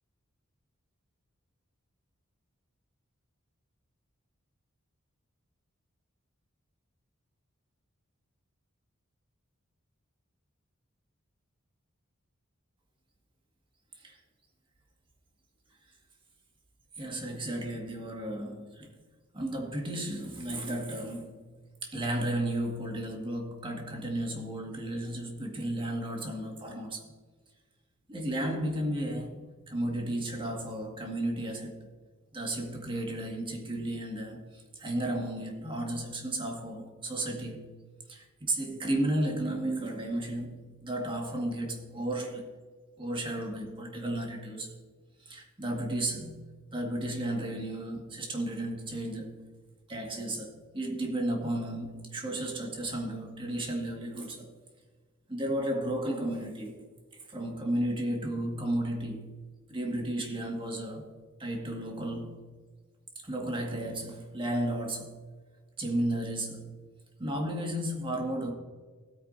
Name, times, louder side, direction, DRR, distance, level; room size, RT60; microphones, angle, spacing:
voice 1, 17.0-18.9 19.3-21.4 21.8-27.1 28.1-31.9 32.3-37.7 38.1-42.5 43.0-44.7 45.2-46.5 46.7-49.4 49.9-54.5 55.3-56.8 57.3-59.3 59.7-61.1 61.4-62.4 63.2-65.2 65.8-66.8 67.2-68.5, right 1 dB, 25° right, 1.9 m, -33 dB
16.0 x 9.2 x 2.7 m
head